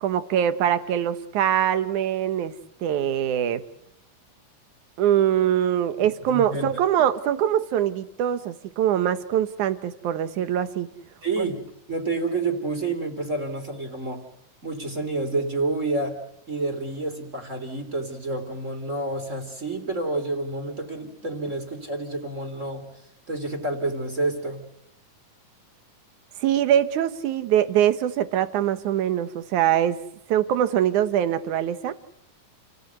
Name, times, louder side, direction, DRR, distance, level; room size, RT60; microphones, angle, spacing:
voice 1, 0.0-2.5 2.8-3.6 5.0-10.9 11.4-11.5 26.4-30.0 30.3-31.9, right 10 dB, 70° right, 11 dB, 2.6 m, -23 dB
voice 2, 6.3-6.7 11.2-11.6 11.9-14.2 14.6-16.2 16.5-22.9 23.3-24.6, right 2 dB, 20° right, 6 dB, 3.3 m, -29 dB
29.5 x 18.0 x 8.1 m, 0.81 s
omnidirectional pair, 3.8 m